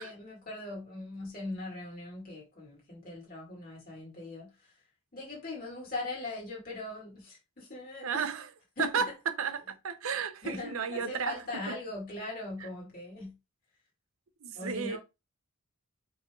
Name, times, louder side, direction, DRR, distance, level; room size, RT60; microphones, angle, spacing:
voice 1, 0.0-4.7 5.1-8.3 8.8-9.0 10.4-13.3 14.5-15.0, left 2 dB, 40° left, 1.9 m, -40 dB
voice 2, 8.0-8.5 8.8-9.1 9.4-11.3 14.4-15.0, right 6 dB, 70° right, 0.6 m, -33 dB
4.8 x 3.3 x 2.3 m
head